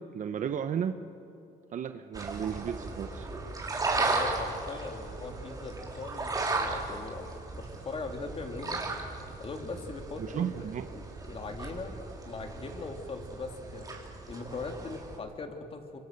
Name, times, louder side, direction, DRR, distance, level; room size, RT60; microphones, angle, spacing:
voice 1, 0.1-1.0 1.7-3.3 10.2-10.9, right 8 dB, 50° right, 9 dB, 1.0 m, -33 dB
sound 1, 2.1-15.2, right 3 dB, 20° right, 4.0 m, -36 dB
voice 2, 4.0-8.9 9.4-12.0 12.2-13.9 14.2-16.0, left 3 dB, 35° left, 4 dB, 3.1 m, -40 dB
25.5 x 25.0 x 6.7 m, 2.8 s
cardioid pair, 110°, 17 cm